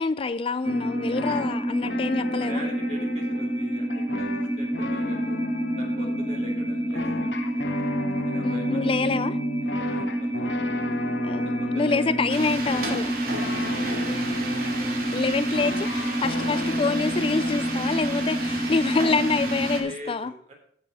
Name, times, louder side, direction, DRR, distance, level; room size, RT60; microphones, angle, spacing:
voice 1, 0.0-2.6 6.0-6.2 8.4-9.4 11.2-13.2 15.1-20.3, left 4 dB, 30° left, 13 dB, 0.4 m, -26 dB
sound 1, 0.6-20.0, left 3 dB, 75° left, 0.9 m, -35 dB
sound 2, 0.6-19.8, right 1 dB, 15° right, 1.4 m, -28 dB
voice 2, 2.4-5.4 5.8-7.8 8.2-9.2 9.6-10.6 11.6-12.2 13.5-14.2 19.8-20.5, right 1 dB, 40° right, 1 dB, 3.5 m, -43 dB
sound 3, 12.3-19.8, right 3 dB, 55° right, 2.6 m, -34 dB
14.5 x 7.0 x 4.2 m, 0.62 s
head